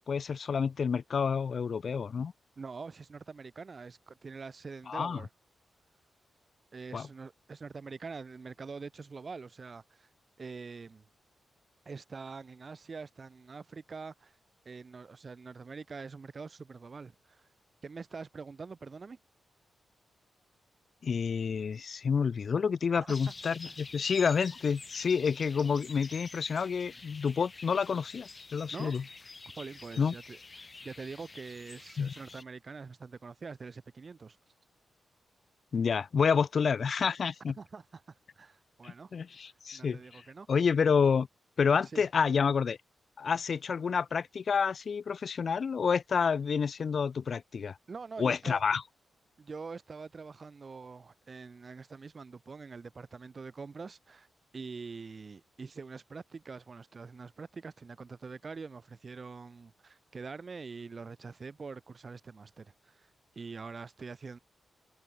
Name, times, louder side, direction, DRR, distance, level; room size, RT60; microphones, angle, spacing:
voice 1, 0.1-2.3 4.9-5.2 6.9-7.1 21.0-29.0 30.0-30.1 32.0-32.1 35.7-37.5 38.8-40.2 40.5-41.3 41.6-42.8 43.2-47.8 48.2-48.8, left 6 dB, 60° left, 0.4 m, -29 dB
voice 2, 2.6-5.3 6.7-10.1 10.4-11.0 11.9-14.4 14.6-17.5 17.8-19.2 22.9-23.2 23.6-23.7 28.7-28.9 29.6-34.4 37.6-38.0 38.4-39.2 39.7-40.5 41.9-42.0 47.9-48.6 49.4-54.3 54.5-63.1 63.4-64.4, right 4 dB, 45° right, 4.0 m, -44 dB
sound 1, 23.1-32.4, left 3 dB, 40° left, 6.9 m, -48 dB
cardioid pair, 60°, 0 cm